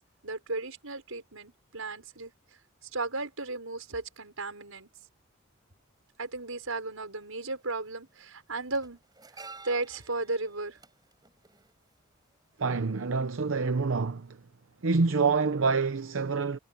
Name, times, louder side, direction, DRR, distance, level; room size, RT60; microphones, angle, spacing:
voice 1, 0.2-2.3 2.9-4.9 6.2-9.0 9.6-10.8, right 3 dB, 90° right, 5.6 m, -35 dB
sound 1, 6.3-6.4 7.6-7.8 8.1-12.4 12.7-12.8, right 3 dB, 20° right, 5.4 m, -51 dB
voice 2, 12.6-14.4 14.8-16.6, right 4 dB, 70° right, 0.7 m, -27 dB
head